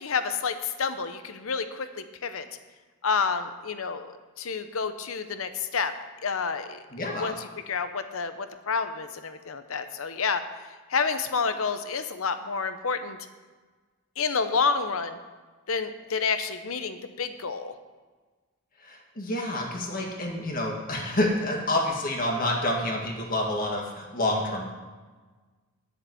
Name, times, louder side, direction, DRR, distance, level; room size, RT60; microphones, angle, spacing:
voice 1, 0.0-2.5 3.0-5.9 6.2-7.3 7.7-10.4 10.9-13.2 14.2-15.2 15.7-17.7, left 5 dB, 70° left, 10 dB, 0.8 m, -29 dB
voice 2, 6.9-7.4 18.8-24.7, left 1 dB, 40° left, 0 dB, 1.9 m, -28 dB
11.0 x 6.6 x 7.9 m, 1.3 s
head